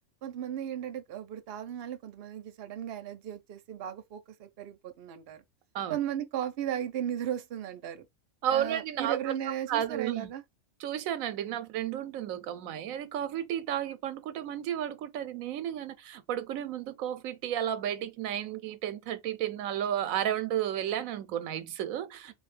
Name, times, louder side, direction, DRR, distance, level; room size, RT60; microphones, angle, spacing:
voice 1, 0.2-5.4 5.9-8.1 8.5-10.4, right 10 dB, 55° right, 0.8 m, -36 dB
voice 2, 8.4-9.3 9.7-10.3 10.8-22.4, right 10 dB, 90° right, 1.0 m, -33 dB
3.7 x 2.4 x 3.2 m
omnidirectional pair, 1.4 m